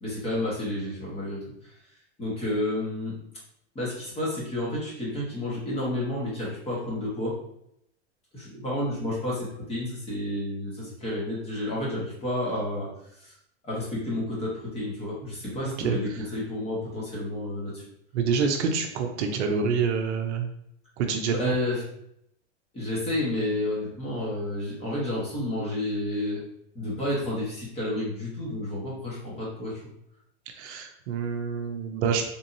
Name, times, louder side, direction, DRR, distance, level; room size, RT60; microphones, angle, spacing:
voice 1, 0.0-1.4 2.2-3.1 3.7-7.3 8.3-12.9 13.6-17.8 21.4-21.8 22.7-26.4 26.7-29.8, left 1 dB, 15° left, -6 dB, 1.3 m, -30 dB
voice 2, 15.6-16.3 18.1-20.5 21.0-21.5 30.5-32.2, right 5 dB, 70° right, 3 dB, 0.6 m, -27 dB
3.6 x 2.8 x 2.6 m, 0.76 s
supercardioid pair, 150°, 36 cm